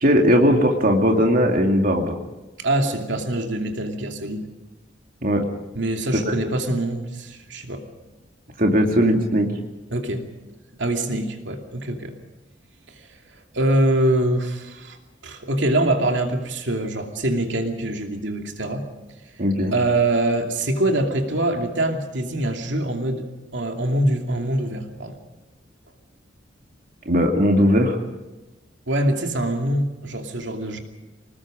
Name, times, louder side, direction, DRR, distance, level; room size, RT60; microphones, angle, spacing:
voice 1, 0.0-2.2 5.2-5.4 8.6-9.5 19.4-19.7 27.1-28.0, equal, 50° right, 2 dB, 2.5 m, -18 dB
voice 2, 2.6-4.5 5.7-7.8 9.9-10.2 10.8-12.1 13.0-13.1 13.5-15.0 15.2-18.8 19.7-23.3 23.5-25.2 28.9-30.8, right 1 dB, 75° right, 3 dB, 2.7 m, -24 dB
27.0 x 19.5 x 5.1 m, 1.1 s
head